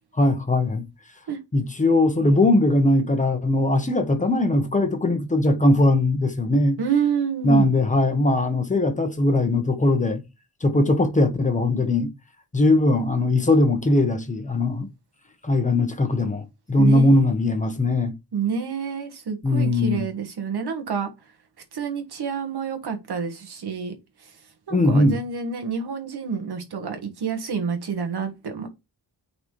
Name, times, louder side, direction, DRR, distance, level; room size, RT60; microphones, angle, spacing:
voice 1, 0.1-0.9 1.5-6.8 7.4-10.2 10.6-12.1 12.5-14.9 15.4-18.1 19.4-20.1 24.7-25.2, left 2 dB, 20° left, 1.1 m, -20 dB
voice 2, 6.8-7.7 16.8-17.2 18.3-21.1 21.7-24.3 24.7-28.7, right 6 dB, 70° right, 1.5 m, -28 dB
8.8 x 4.1 x 3.2 m
wide cardioid pair, 160°, 41 cm